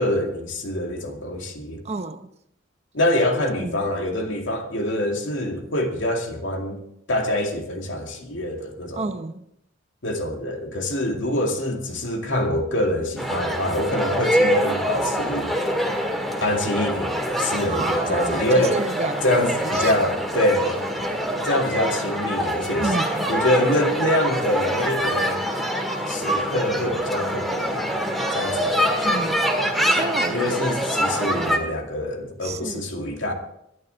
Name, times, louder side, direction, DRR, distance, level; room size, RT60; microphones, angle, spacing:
voice 1, 0.0-1.8 2.9-6.8 7.1-9.1 10.0-15.6 16.4-18.8 19.2-20.8 21.4-22.9 23.3-25.4 26.1-27.8 28.3-29.3 30.3-33.3, left 1 dB, 75° left, 2.3 m, -25 dB
voice 2, 1.8-2.3 3.2-3.9 8.9-9.4 17.7-19.9 22.8-23.3 29.0-29.5 30.0-30.5 31.3-31.6 32.4-32.9, right 3 dB, 35° right, 0.7 m, -30 dB
sound 1, 13.2-31.6, equal, ahead, 1.8 m, -25 dB
22.0 x 11.0 x 3.4 m
head